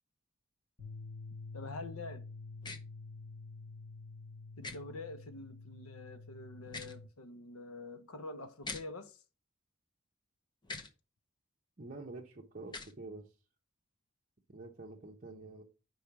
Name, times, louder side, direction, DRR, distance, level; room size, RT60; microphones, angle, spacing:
sound 1, 0.8-7.0, left 3 dB, 55° left, 2.3 m, -48 dB
voice 1, 1.5-2.3 4.6-9.2, left 2 dB, 85° left, 0.8 m, -46 dB
sound 2, 2.6-2.8 4.6-4.8 6.6-7.0 8.6-8.8 10.6-10.9 12.6-12.9, left 3 dB, 20° left, 0.8 m, -43 dB
voice 2, 11.8-13.3 14.5-15.6, right 3 dB, 35° right, 0.8 m, -47 dB
5.2 x 4.7 x 5.8 m
head